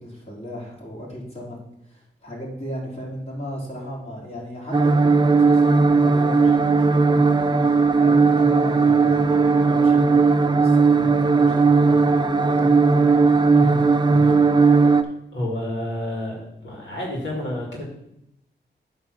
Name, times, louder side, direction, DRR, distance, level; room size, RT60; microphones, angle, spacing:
voice 1, 0.0-1.6 1.9-10.2 10.4-13.4 14.1-14.3, equal, 35° left, -5 dB, 3.5 m, -35 dB
sound 1, 4.7-15.0, right 4 dB, 25° right, 0.5 m, -17 dB
voice 2, 13.5-13.8 14.8-14.9 15.3-17.8, left 1 dB, 85° left, -3 dB, 2.2 m, -30 dB
9.0 x 3.6 x 6.3 m, 0.82 s
wide cardioid pair, 90°, 18 cm